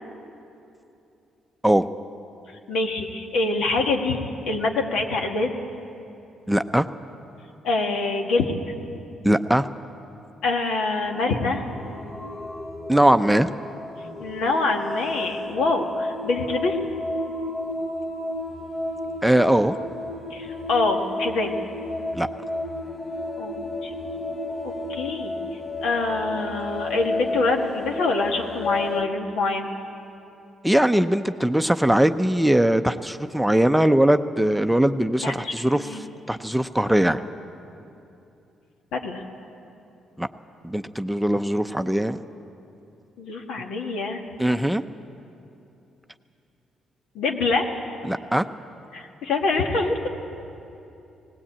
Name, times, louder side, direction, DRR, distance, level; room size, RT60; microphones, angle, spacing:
voice 1, 2.7-4.2 4.5-5.6 7.6-8.6 10.4-11.6 14.2-16.8 20.3-21.6 23.4-23.9 24.6-25.3 25.8-29.7 35.2-36.1 38.9-39.2 43.2-44.2 47.2-47.7 48.9-50.1, left 3 dB, 85° left, 2 dB, 1.9 m, -25 dB
voice 2, 6.5-6.9 9.2-9.7 12.9-13.5 19.2-19.7 22.1-22.3 30.6-35.9 36.3-37.2 40.2-40.3 40.6-42.2 44.4-44.8 48.1-48.4, right 1 dB, 5° right, 9 dB, 0.6 m, -20 dB
sound 1, 11.0-29.0, left 2 dB, 40° left, 1.3 m, -32 dB
19.0 x 17.5 x 8.7 m, 2.8 s
cardioid pair, 90°, 0 cm